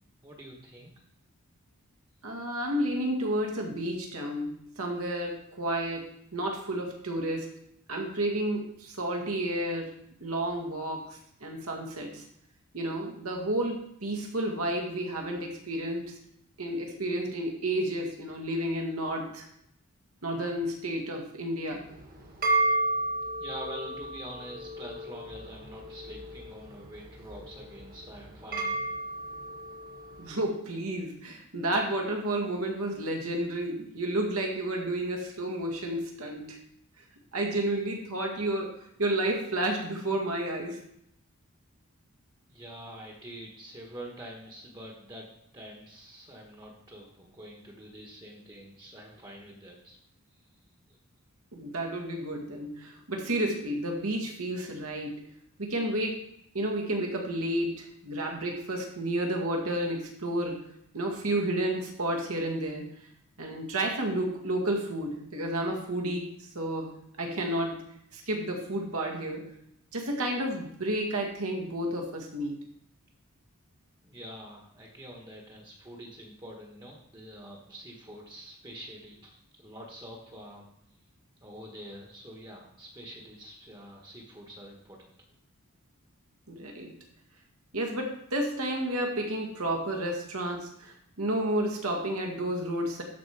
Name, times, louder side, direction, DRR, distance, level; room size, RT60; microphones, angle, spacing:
voice 1, 0.2-0.9 23.4-28.9 42.5-45.3 45.5-50.0 50.5-50.6 50.9-51.0 74.0-80.7 81.4-85.1, equal, 20° right, 0 dB, 1.3 m, -46 dB
voice 2, 2.2-6.1 6.3-7.5 7.9-9.9 10.2-12.2 12.7-16.1 16.6-19.5 20.2-21.8 30.2-36.6 37.3-40.8 51.5-55.3 55.6-56.2 56.5-60.6 60.9-63.0 63.4-66.9 67.2-67.8 68.1-69.5 69.9-72.7 86.5-86.9 87.7-93.0, right 1 dB, 75° right, 1 dB, 2.0 m, -31 dB
sound 1, 21.8-30.3, right 2 dB, 40° right, 1.6 m, -33 dB
12.5 x 4.6 x 4.8 m, 0.74 s
head